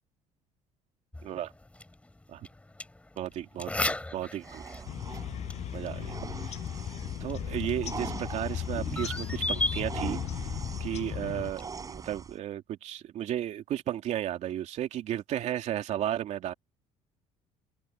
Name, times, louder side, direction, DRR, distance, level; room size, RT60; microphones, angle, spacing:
sound 1, 1.1-12.2, left 2 dB, 10° left, 5.3 m, -39 dB
voice 1, 3.2-4.6 5.7-6.2 7.2-10.2 10.8-16.5, right 11 dB, 60° right, 2.9 m, -34 dB
sound 2, 4.4-12.4, right 5 dB, 25° right, 4.9 m, -42 dB
sound 3, 4.9-11.5, left 11 dB, 55° left, 7.3 m, -36 dB
cardioid pair, 110°, 13 cm